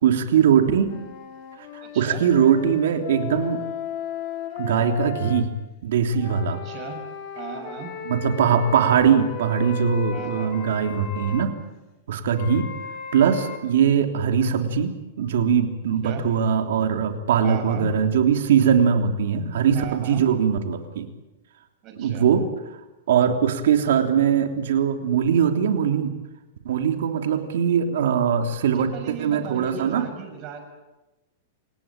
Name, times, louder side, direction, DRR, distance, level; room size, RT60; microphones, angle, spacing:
voice 1, 0.0-1.0 1.9-3.6 4.6-5.5 5.8-6.6 8.0-11.5 12.1-12.7 13.1-21.1 22.0-22.4 23.1-26.1 26.6-28.9 29.2-30.0, right 7 dB, 75° right, 6 dB, 3.2 m, -21 dB
sound 1, 0.9-5.4 6.1-11.5 12.3-13.6, left 7 dB, 40° left, 3.7 m, -35 dB
voice 2, 1.8-2.2 6.5-7.0 7.3-7.9 10.1-10.8 16.0-16.2 17.4-17.9 19.7-20.2 21.8-22.3 28.7-30.8, right 6 dB, 35° right, 5 dB, 6.7 m, -37 dB
28.5 x 17.5 x 8.9 m, 1.0 s
supercardioid pair, 150°, 0 cm